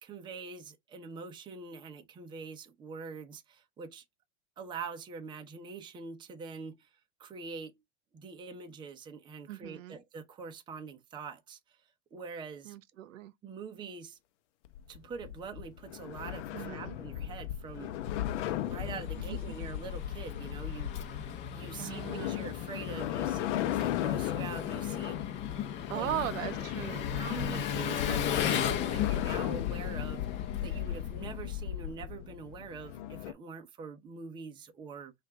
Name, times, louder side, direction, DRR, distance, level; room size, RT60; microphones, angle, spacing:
voice 1, 0.0-4.0 4.6-6.9 7.2-7.8 8.1-11.6 12.1-12.8 13.4-14.2 14.9-17.9 18.7-21.2 21.5-25.3 25.9-26.1 27.1-35.1, right 5 dB, 10° right, 0.6 m, -44 dB
voice 2, 9.5-10.0 12.6-13.3 16.5-17.0 19.2-19.6 21.8-22.5 25.9-27.1, right 12 dB, 80° right, 0.7 m, -38 dB
sound 1, 14.6-33.3, left 12 dB, 65° left, 0.7 m, -36 dB
Engine, 18.1-31.7, left 8 dB, 30° left, 0.8 m, -37 dB
5.8 x 2.5 x 3.5 m
supercardioid pair, 145°, 38 cm